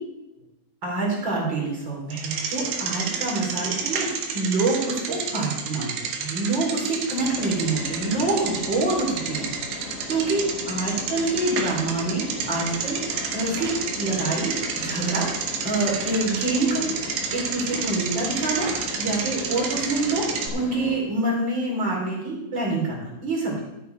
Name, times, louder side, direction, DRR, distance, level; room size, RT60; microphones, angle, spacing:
voice 1, 0.8-4.1 4.3-5.9 6.2-9.5 9.8-15.3 15.6-16.9 17.3-20.3 20.5-23.6, right 2 dB, 25° right, -4 dB, 3.1 m, -26 dB
Bicycle, 2.1-20.5, right 6 dB, 65° right, 2.7 m, -30 dB
sound 1, 7.2-21.0, left 4 dB, 70° left, 3.8 m, -38 dB
13.0 x 8.2 x 4.5 m, 0.94 s
omnidirectional pair, 5.7 m